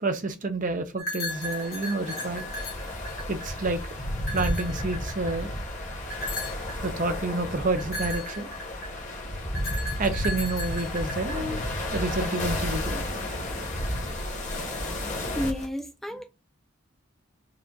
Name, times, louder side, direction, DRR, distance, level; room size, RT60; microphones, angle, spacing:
voice 1, 0.0-2.5 3.3-3.8 4.3-5.5 6.8-8.5 10.0-11.6 11.9-13.1, right 2 dB, 40° right, 0.6 m, -29 dB
sound 1, 1.0-3.6 4.2-5.4 6.1-6.7 7.8-9.0 9.5-11.6, left 1 dB, 80° left, 1.7 m, -35 dB
sound 2, 1.3-15.7, left 1 dB, 35° left, 1.3 m, -32 dB
voice 2, 15.0-16.2, equal, ahead, 0.6 m, -32 dB
4.7 x 2.4 x 3.9 m
head